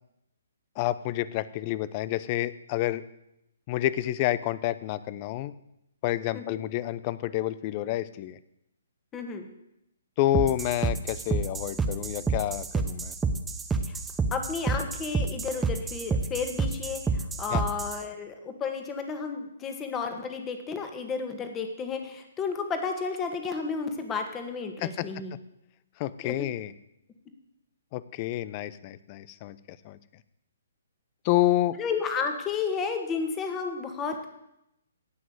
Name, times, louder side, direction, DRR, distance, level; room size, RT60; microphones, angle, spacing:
voice 1, 0.8-3.0 3.7-5.5 6.0-8.4 10.2-13.1 17.5-17.6 24.8-25.1 26.0-26.7 27.9-30.0 31.2-31.8, left 14 dB, 35° left, 17 dB, 0.7 m, -29 dB
voice 2, 9.1-9.5 13.9-14.0 14.3-25.3 26.2-26.5 31.8-34.3, left 5 dB, 15° left, 6 dB, 1.8 m, -32 dB
sound 1, 10.3-18.0, right 4 dB, 10° right, 0.9 m, -29 dB
17.0 x 6.2 x 7.9 m, 0.85 s
figure-of-eight pair, 130°, 0 cm